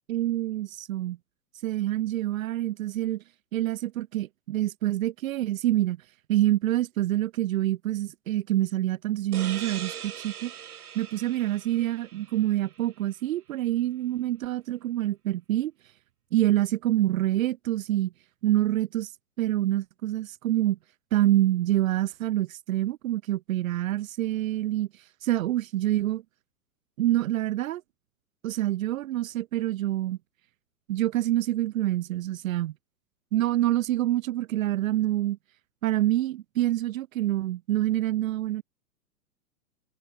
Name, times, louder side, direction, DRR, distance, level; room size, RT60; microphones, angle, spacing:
voice 1, 0.1-1.2 1.6-3.2 3.5-6.0 6.3-10.5 11.0-15.7 16.3-18.1 18.4-19.1 19.4-20.8 21.1-26.2 27.0-27.8 28.4-30.2 30.9-32.7 33.3-35.4 35.8-38.6, right 14 dB, 60° right, 1.8 m, -26 dB
sound 1, 9.3-12.8, right 9 dB, 75° right, 5.5 m, -41 dB
hypercardioid pair, 125°, 45 cm